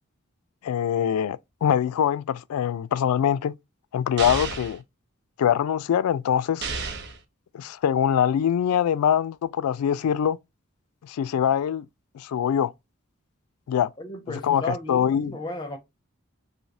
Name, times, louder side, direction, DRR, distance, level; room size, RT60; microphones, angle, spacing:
voice 1, 0.6-3.6 3.9-4.8 5.4-6.7 7.5-10.4 11.0-11.9 12.1-12.7 13.7-13.9 14.4-15.4, left 9 dB, 85° left, 0.3 m, -23 dB
sound 1, 4.2-4.8 6.6-7.2, right 4 dB, 50° right, 0.6 m, -31 dB
voice 2, 14.0-15.8, left 1 dB, 20° left, 0.4 m, -34 dB
3.3 x 2.7 x 2.6 m
head